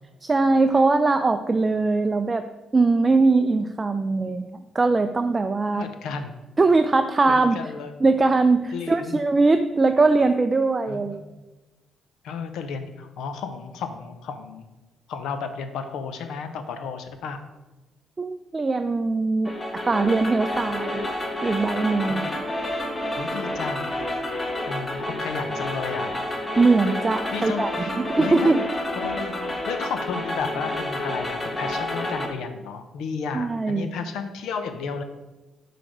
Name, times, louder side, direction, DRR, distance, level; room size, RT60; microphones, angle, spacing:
voice 1, 0.2-2.5 2.7-5.9 6.6-7.6 8.0-11.2 18.2-19.5 19.9-21.1 21.4-22.3 26.6-27.7 28.0-28.6 33.3-33.9, right 3 dB, 25° right, 7 dB, 0.3 m, -21 dB
voice 2, 5.7-6.3 7.3-8.0 8.7-9.2 10.9-11.4 12.2-14.7 15.1-17.4 22.1-22.3 23.2-23.9 24.7-26.1 27.3-28.7 28.9-35.0, left 5 dB, 85° left, 8 dB, 0.6 m, -33 dB
sound 1, 19.4-32.3, left 1 dB, 20° left, 1.0 m, -29 dB
6.2 x 3.3 x 5.9 m, 1.1 s
cardioid pair, 90°, 0 cm